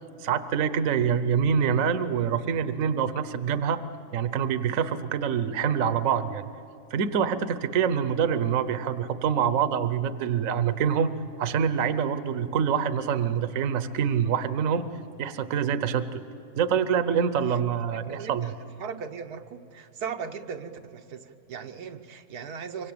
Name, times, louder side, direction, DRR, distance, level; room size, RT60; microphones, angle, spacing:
voice 1, 0.2-3.8 4.1-6.4 6.9-11.1 11.4-14.9 15.2-16.2 16.6-18.5, right 7 dB, 65° right, 12 dB, 1.3 m, -25 dB
voice 2, 18.1-18.5 18.8-22.9, right 6 dB, 85° right, 5 dB, 1.5 m, -38 dB
25.0 x 23.5 x 8.7 m, 2.7 s
omnidirectional pair, 1.6 m